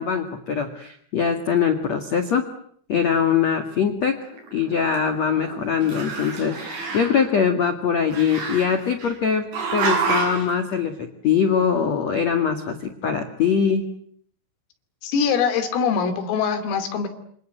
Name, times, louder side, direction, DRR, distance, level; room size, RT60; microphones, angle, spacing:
voice 1, 0.0-2.4 2.9-4.2 4.5-13.9, left 7 dB, 50° left, 7 dB, 2.2 m, -22 dB
Growling, 4.3-5.5 5.8-7.3 8.1-9.1 9.5-10.5, right 5 dB, 60° right, 9.7 m, -28 dB
voice 2, 15.0-17.1, left 6 dB, 80° left, 9 dB, 5.4 m, -23 dB
27.0 x 26.5 x 8.0 m, 0.63 s
omnidirectional pair, 5.9 m